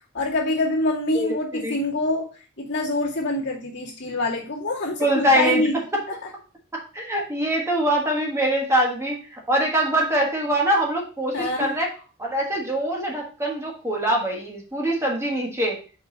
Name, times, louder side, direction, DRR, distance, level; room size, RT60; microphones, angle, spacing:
voice 1, 0.1-2.3 2.6-5.7 6.1-6.3 11.3-11.7, left 2 dB, 55° left, -4 dB, 2.2 m, -25 dB
voice 2, 5.0-5.7 5.9-6.0 6.7-11.9 12.2-15.8, right 1 dB, 15° right, -1 dB, 1.3 m, -23 dB
5.4 x 5.2 x 3.9 m, 0.37 s
head